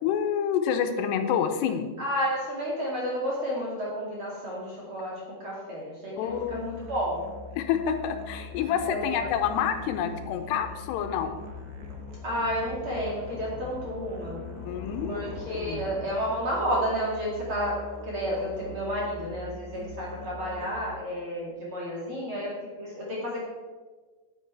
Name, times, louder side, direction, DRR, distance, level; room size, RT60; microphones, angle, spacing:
voice 1, 0.0-1.9 6.2-6.8 7.6-11.4 14.7-15.8, left 8 dB, 90° left, 7 dB, 2.8 m, -28 dB
voice 2, 2.0-7.2 8.9-9.3 12.2-14.4 15.1-22.5 22.8-23.4, equal, 35° right, -5 dB, 2.6 m, -31 dB
Musical instrument, 6.3-21.0, left 2 dB, 80° right, 3.1 m, -43 dB
sound 1, 8.5-16.1, left 4 dB, 65° left, 2.8 m, -44 dB
9.5 x 9.2 x 4.8 m, 1.3 s
omnidirectional pair, 4.9 m